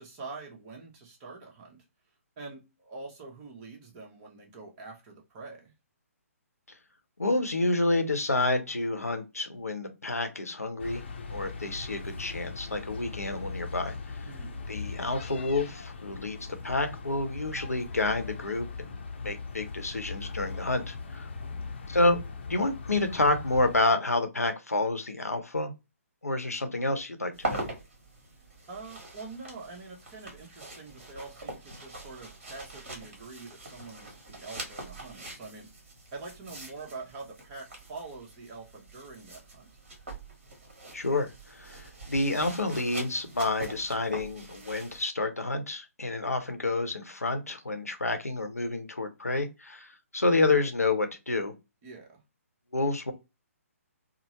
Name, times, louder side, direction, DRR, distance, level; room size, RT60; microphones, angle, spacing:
voice 1, 0.0-1.8 2.4-5.7 14.2-14.6 21.3-21.7 28.7-35.7 36.1-39.7 51.8-52.2, right 3 dB, 25° right, 0.9 m, -45 dB
voice 2, 7.2-11.0 11.3-13.9 14.7-16.4 16.6-21.3 21.9-22.2 22.5-25.7 26.2-27.7 40.9-49.9 50.1-51.5 52.7-53.1, left 2 dB, 80° left, 0.8 m, -29 dB
sound 1, 10.8-23.8, left 4 dB, 45° left, 0.7 m, -40 dB
sound 2, 27.3-45.1, right 2 dB, 45° right, 1.3 m, -43 dB
3.5 x 2.0 x 2.9 m
figure-of-eight pair, 135°, 8 cm